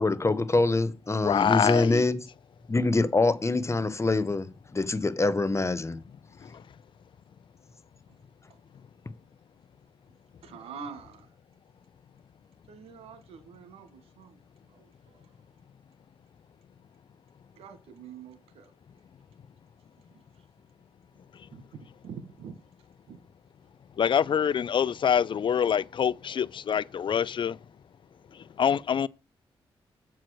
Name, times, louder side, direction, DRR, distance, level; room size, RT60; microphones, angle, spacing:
voice 1, 0.0-2.2 2.7-6.0, left 2 dB, 30° left, 1.0 m, -25 dB
voice 2, 1.2-2.1 24.0-27.6 28.6-29.1, left 8 dB, 55° left, 0.4 m, -25 dB
voice 3, 10.4-11.3 12.7-14.4 14.7-15.2 17.6-18.7 21.5-21.6 22.0-22.6 23.1-23.2, right 6 dB, 85° right, 1.5 m, -45 dB
7.5 x 4.7 x 6.3 m
cardioid pair, 55°, 10 cm